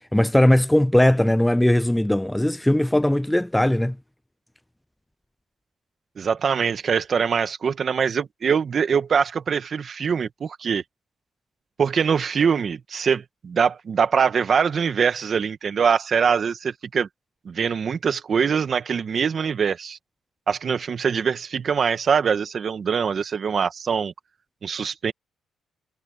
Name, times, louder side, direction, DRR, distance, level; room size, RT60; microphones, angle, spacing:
voice 1, 0.1-4.0, left 1 dB, 5° left, 0.4 m, -19 dB
voice 2, 6.2-10.8 11.8-17.1 17.4-20.0 20.5-24.1 24.6-25.1, right 6 dB, 50° right, 1.6 m, -23 dB
cardioid pair, 90°, 0 cm